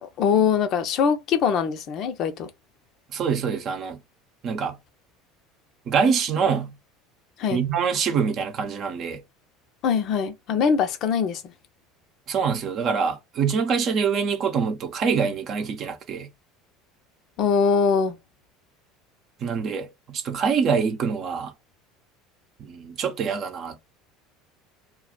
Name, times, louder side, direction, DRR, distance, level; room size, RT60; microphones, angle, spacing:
voice 1, 0.0-2.5 7.4-7.6 9.8-11.5 17.4-18.2, left 6 dB, 55° left, 0.6 m, -22 dB
voice 2, 3.1-4.0 4.4-4.8 5.9-6.7 7.5-9.2 12.3-16.3 19.4-21.5 22.6-23.8, right 6 dB, 50° right, 0.7 m, -25 dB
2.3 x 2.2 x 3.7 m
hypercardioid pair, 80°, 0 cm